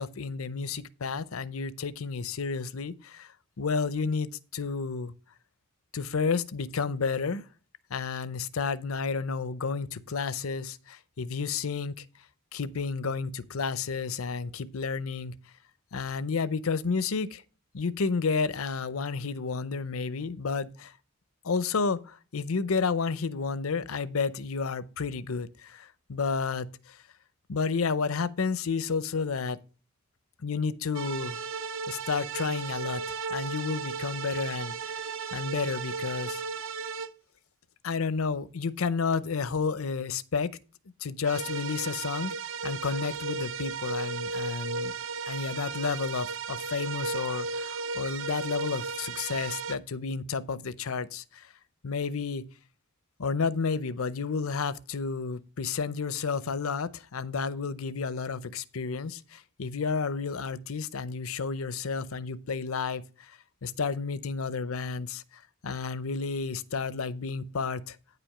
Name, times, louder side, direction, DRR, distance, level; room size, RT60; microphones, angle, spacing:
voice 1, 0.0-3.3 3.6-5.1 5.9-7.4 7.9-12.1 12.5-15.3 15.9-17.4 17.7-20.9 21.4-27.0 27.5-29.6 30.4-31.4 31.9-33.0 33.3-34.7 35.3-36.4 37.8-40.6 41.0-42.3 42.6-44.9 45.3-51.5 51.8-52.4 53.2-68.0, left 5 dB, 80° left, 0.7 m, -31 dB
sound 1, 30.9-37.1 41.2-49.8, right 4 dB, 60° right, 0.6 m, -35 dB
9.4 x 5.1 x 5.7 m
head